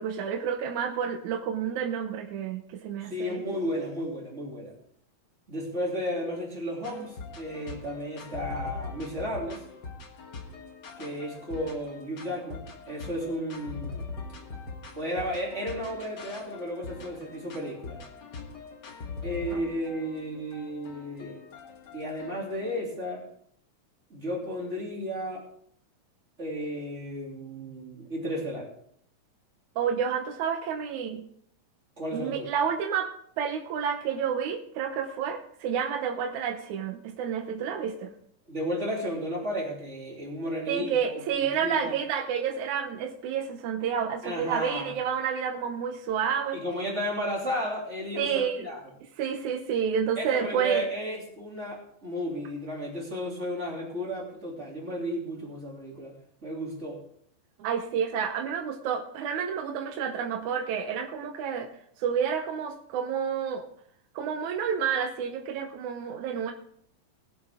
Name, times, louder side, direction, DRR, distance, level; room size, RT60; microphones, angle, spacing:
voice 1, 0.0-3.4 19.5-19.6 29.8-31.3 32.1-38.1 40.7-46.6 48.1-48.6 49.2-50.9 57.6-61.7 62.0-63.7 64.2-66.5, right 7 dB, 70° right, 3 dB, 2.2 m, -30 dB
voice 2, 3.0-4.7 5.5-9.6 11.0-14.0 15.0-18.0 19.2-21.4 21.9-23.3 24.1-25.5 26.4-28.7 32.0-32.4 38.5-41.9 44.2-44.9 46.5-48.9 50.2-57.0, equal, 20° right, -3 dB, 2.9 m, -33 dB
sound 1, 6.8-22.8, left 4 dB, 55° left, 1.2 m, -42 dB
20.0 x 7.8 x 3.6 m, 0.65 s
omnidirectional pair, 3.9 m